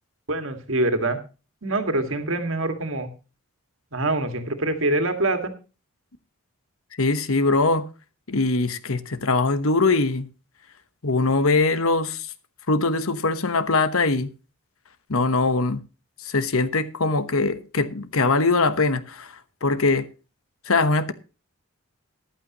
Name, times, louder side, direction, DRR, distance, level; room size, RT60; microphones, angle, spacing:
voice 1, 0.3-1.2 1.6-3.1 3.9-5.5, right 2 dB, 65° right, 2.0 m, -24 dB
voice 2, 7.0-7.9 8.3-10.3 11.0-12.3 12.7-14.3 15.1-15.8 16.2-19.3 19.6-20.1 20.7-21.1, left 3 dB, 75° left, 1.1 m, -22 dB
14.5 x 11.5 x 3.0 m
head